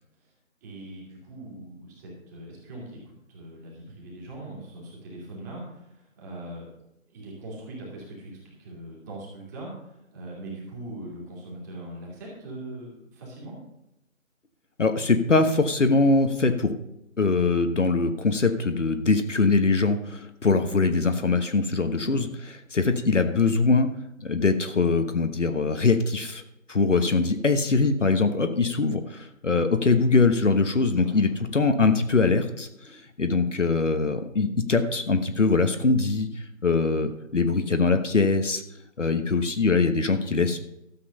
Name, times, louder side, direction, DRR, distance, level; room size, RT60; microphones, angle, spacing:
voice 1, 0.6-6.7 7.1-13.6 22.0-22.2 31.0-31.4, right 1 dB, 15° right, -3 dB, 2.5 m, -41 dB
voice 2, 14.8-16.7 17.2-22.3 22.7-23.9 24.2-26.4 26.7-38.6 39.0-40.6, left 3 dB, 60° left, 8 dB, 1.2 m, -22 dB
12.5 x 7.6 x 5.4 m, 0.86 s
figure-of-eight pair, 155°, 40 cm